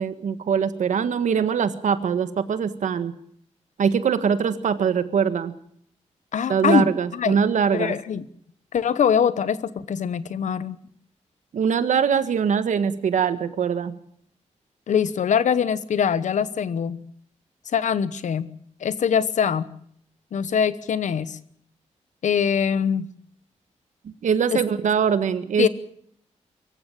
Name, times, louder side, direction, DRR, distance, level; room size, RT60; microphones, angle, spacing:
voice 1, 0.0-3.1 3.8-5.5 6.5-7.9 11.5-13.9 24.0-25.7, right 7 dB, 90° right, 12 dB, 1.5 m, -22 dB
voice 2, 6.3-7.4 7.7-8.3 8.7-10.8 14.9-17.0 17.7-18.5 18.8-19.7 20.3-21.4 22.2-23.1 24.5-24.6 25.6-25.7, left 7 dB, 85° left, 15 dB, 1.1 m, -23 dB
23.5 x 15.0 x 9.1 m, 0.66 s
wide cardioid pair, 130°, 12 cm